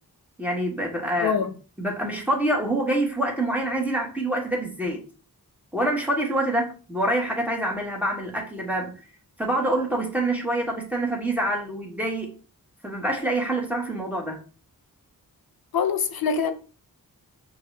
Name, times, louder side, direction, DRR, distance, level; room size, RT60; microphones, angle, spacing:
voice 1, 0.4-1.4 1.8-5.0 5.7-9.0 9.4-12.3 12.8-14.4, right 1 dB, 5° right, 1.3 m, -26 dB
voice 2, 1.2-1.5 15.7-16.5, left 6 dB, 75° left, 0.6 m, -24 dB
5.8 x 2.6 x 3.2 m
wide cardioid pair, 80°, 36 cm